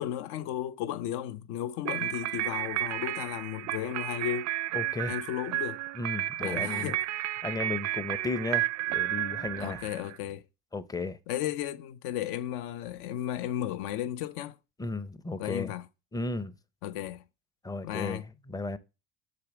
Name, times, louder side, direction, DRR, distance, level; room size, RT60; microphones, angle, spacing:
voice 1, 0.0-4.5 5.1-5.8 6.4-7.0 9.6-10.4 11.3-14.6 15.4-15.8 16.8-17.2 17.8-18.2, left 12 dB, 75° left, 0.7 m, -34 dB
sound 1, 1.9-10.2, right 15 dB, 45° right, 0.4 m, -32 dB
voice 2, 4.7-5.2 6.0-6.9 7.4-9.9 10.7-11.2 14.8-15.7 16.1-16.5 17.6-18.2 18.5-18.8, left 3 dB, 10° left, 0.5 m, -34 dB
6.7 x 3.9 x 6.0 m
supercardioid pair, 100°, 39 cm